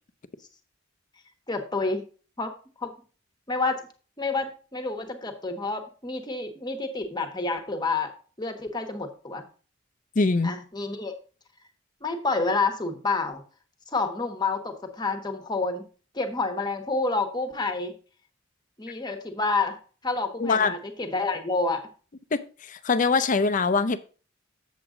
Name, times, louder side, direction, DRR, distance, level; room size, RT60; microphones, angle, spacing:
voice 1, 1.5-2.1 2.4-2.5 2.8-2.9 3.5-3.9 4.2-8.1 8.4-9.4 10.4-11.1 12.0-13.4 13.9-15.8 16.1-17.9 18.8-19.8 20.0-21.9, left 3 dB, 20° left, 6 dB, 1.2 m, -28 dB
voice 2, 10.2-10.5 20.4-20.7 22.3-24.0, left 4 dB, 40° left, 13 dB, 0.6 m, -23 dB
7.8 x 7.4 x 3.8 m, 0.38 s
head